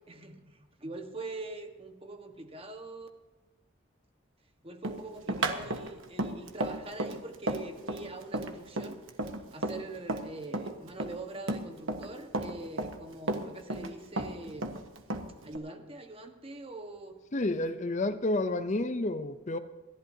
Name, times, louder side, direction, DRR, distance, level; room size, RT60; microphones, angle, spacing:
voice 1, 0.1-3.1 4.6-9.0 9.5-14.9 15.4-17.2, right 2 dB, 30° right, 5 dB, 1.4 m, -43 dB
Run, 4.8-10.3 10.5-12.1 12.3-13.9 14.2-15.6, right 2 dB, 75° right, 1.4 m, -33 dB
voice 2, 17.3-19.6, left 2 dB, 35° left, 11 dB, 0.6 m, -30 dB
28.5 x 12.0 x 2.8 m, 1.2 s
head